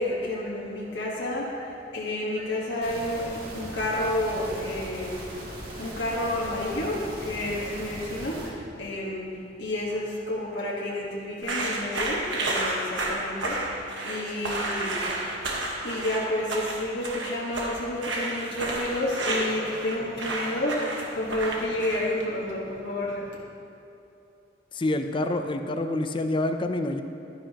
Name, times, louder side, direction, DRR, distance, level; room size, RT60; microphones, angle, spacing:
voice 1, 0.0-5.2 5.8-9.3 9.6-15.2 15.8-23.4, left 1 dB, 85° left, -5 dB, 1.4 m, -30 dB
sound 1, 2.8-8.5, right 1 dB, 55° right, 2.2 m, -39 dB
sound 2, 11.4-22.2, right 2 dB, 80° right, 1.4 m, -31 dB
voice 2, 24.7-27.0, left 2 dB, 30° left, 7 dB, 0.5 m, -27 dB
12.0 x 10.5 x 2.9 m, 2.8 s
head